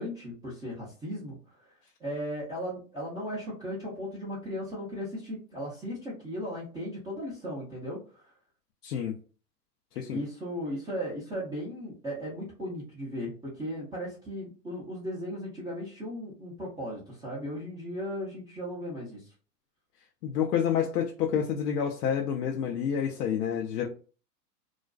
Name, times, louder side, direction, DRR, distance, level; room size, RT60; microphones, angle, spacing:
voice 1, 0.0-1.7 2.0-8.3 10.1-19.3, equal, 10° right, 0.6 m, -36 dB
voice 2, 8.8-9.1 10.0-10.2 20.2-23.9, left 8 dB, 70° left, 0.6 m, -28 dB
2.5 x 2.2 x 2.2 m
hypercardioid pair, 115°, 49 cm